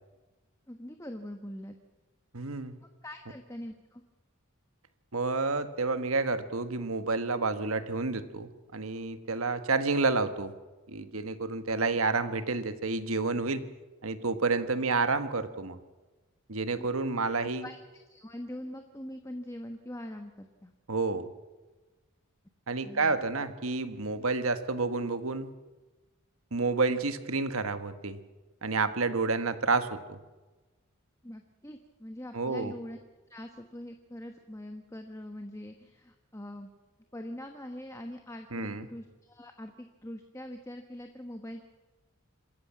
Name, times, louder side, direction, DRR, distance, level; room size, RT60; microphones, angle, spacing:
voice 1, 0.7-1.8 2.8-4.0 16.8-16.9 17.1-17.3 17.6-20.7 22.8-23.2 31.2-33.0 33.3-36.7 37.1-41.6, left 1 dB, 15° left, 5 dB, 1.2 m, -43 dB
voice 2, 2.3-2.8 5.1-10.5 10.9-13.6 14.0-15.8 16.5-17.7 20.9-21.3 22.7-25.5 26.5-28.2 28.6-30.2 32.3-32.7 38.5-38.9, right 3 dB, 75° right, 10 dB, 1.5 m, -29 dB
27.0 x 14.0 x 7.5 m, 1.2 s
head